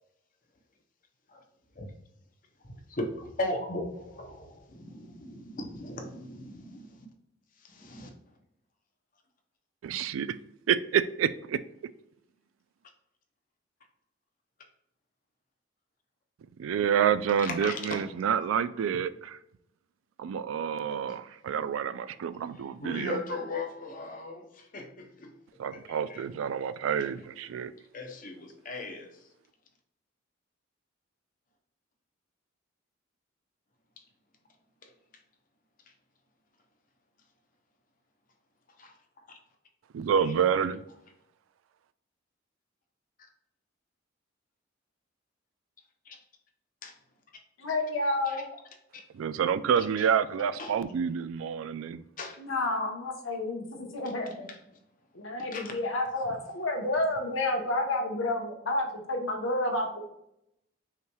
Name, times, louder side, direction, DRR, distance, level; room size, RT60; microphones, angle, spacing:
voice 1, 2.9-6.9 7.7-8.1 17.4-18.0 20.9-21.0 22.8-24.4 24.7-25.3 25.7-26.2 27.9-29.1 38.8-38.9 46.1-46.2 46.8-46.9 48.3-48.4 50.6-50.7 52.2-52.3 55.4-55.7, left 2 dB, 45° left, 3 dB, 0.7 m, -37 dB
voice 2, 9.8-10.4 10.7-11.6 16.6-19.4 20.2-23.2 25.6-27.7 39.9-40.8 49.2-52.0, right 8 dB, 90° right, 15 dB, 0.3 m, -28 dB
voice 3, 47.6-48.4 52.4-54.5 55.1-60.0, left 2 dB, 85° left, 3 dB, 1.0 m, -30 dB
5.6 x 3.1 x 2.3 m, 0.80 s
head